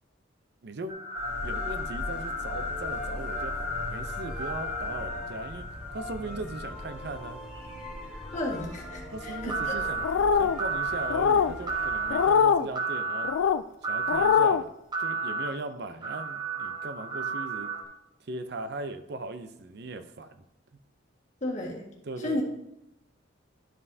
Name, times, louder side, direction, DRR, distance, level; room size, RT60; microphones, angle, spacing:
voice 1, 0.6-1.0 1.4-7.4 9.1-13.3 13.8-14.7 15.0-17.7 18.2-20.4 22.1-22.4, right 2 dB, 55° right, 9 dB, 0.5 m, -39 dB
sound 1, 0.9-6.2 9.5-10.1 10.6-11.1 11.7-12.2 12.7-13.3 13.8-14.4 14.9-15.5 16.0-17.8, right 2 dB, 20° right, 1.1 m, -33 dB
sound 2, 1.1-12.4, left 2 dB, 5° right, 2.8 m, -38 dB
voice 2, 8.3-9.8 21.4-21.9 22.2-22.4, left 1 dB, 40° left, -2 dB, 1.6 m, -33 dB
sound 3, 10.0-10.6 11.1-11.5 12.1-12.7 13.2-13.6 14.1-14.6, left 7 dB, 80° left, 0.3 m, -22 dB
11.5 x 5.4 x 2.7 m, 0.85 s
head